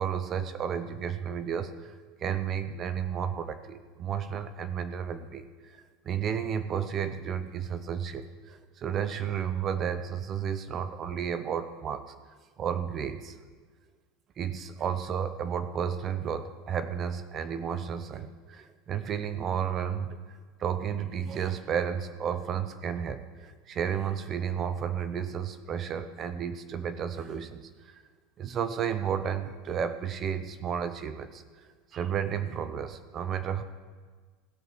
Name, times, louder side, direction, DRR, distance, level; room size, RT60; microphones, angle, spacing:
voice 1, 0.0-12.1 12.6-13.4 14.4-28.0 28.4-33.6, right 8 dB, 35° right, 10 dB, 0.6 m, -32 dB
16.0 x 5.5 x 6.2 m, 1.5 s
supercardioid pair, 125°, 0 cm